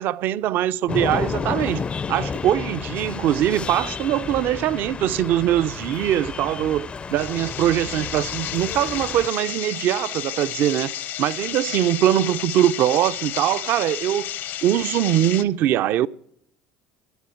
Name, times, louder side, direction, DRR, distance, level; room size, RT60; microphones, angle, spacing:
voice 1, 0.0-14.3 14.6-16.1, right 12 dB, 60° right, 0.5 m, -22 dB
sound 1, 0.9-9.3, left 5 dB, 30° left, 0.5 m, -31 dB
sound 2, 7.2-15.4, left 12 dB, 60° left, 0.8 m, -32 dB
12.5 x 11.5 x 8.3 m
supercardioid pair, 85°, 4 cm